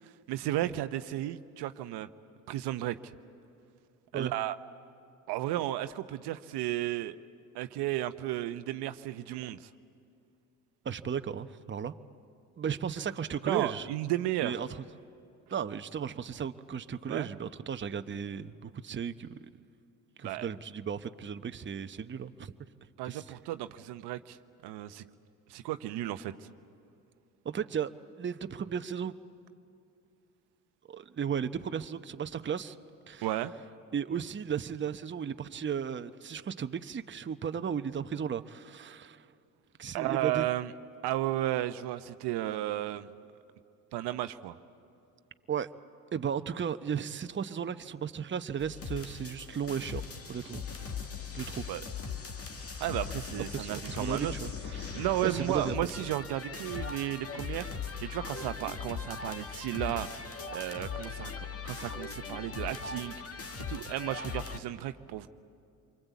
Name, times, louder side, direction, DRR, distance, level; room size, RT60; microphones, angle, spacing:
voice 1, 0.3-2.1 2.5-3.1 4.1-4.6 5.3-7.2 7.5-9.7 13.5-14.6 17.1-17.3 20.2-20.5 23.0-24.4 24.6-25.0 25.5-26.3 33.2-33.5 39.9-40.7 41.0-43.1 43.9-44.6 51.7-51.8 52.8-54.3 54.9-57.7 58.0-63.2 63.7-65.3, right 14 dB, 65° right, 11 dB, 0.9 m, -33 dB
voice 2, 10.8-11.9 12.6-13.9 14.4-14.8 15.5-19.4 20.2-22.5 23.0-23.4 27.4-27.9 28.2-29.1 30.9-32.8 33.1-33.3 33.9-39.3 39.8-40.4 45.5-45.7 46.1-50.0 50.3-50.7 51.3-51.7 53.5-55.7, right 7 dB, 25° right, 10 dB, 0.9 m, -35 dB
sound 1, 48.6-64.6, left 5 dB, 35° left, 2.0 m, -39 dB
27.5 x 23.5 x 8.3 m, 2.5 s
hypercardioid pair, 60°, 43 cm